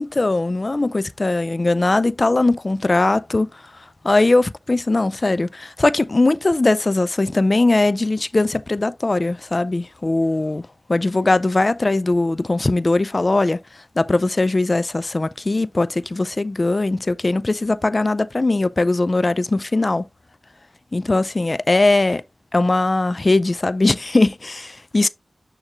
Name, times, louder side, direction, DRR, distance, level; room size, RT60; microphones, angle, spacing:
voice 1, 0.0-3.5 4.0-13.6 14.0-20.0 20.9-22.2 22.5-25.1, left 2 dB, 40° left, 0.4 m, -20 dB
8.9 x 3.1 x 3.6 m
wide cardioid pair, 65°, 0 cm